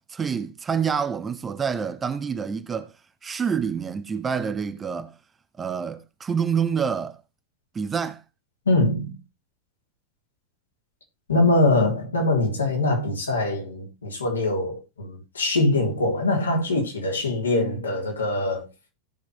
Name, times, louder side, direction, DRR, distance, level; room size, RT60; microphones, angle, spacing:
voice 1, 0.1-2.9 3.2-5.1 5.6-7.2 7.7-8.2, right 6 dB, 20° right, 1.0 m, -27 dB
voice 2, 8.7-9.1 11.3-18.7, left 2 dB, 75° left, 3.7 m, -23 dB
17.0 x 6.1 x 3.3 m
figure-of-eight pair, 90°, 0 cm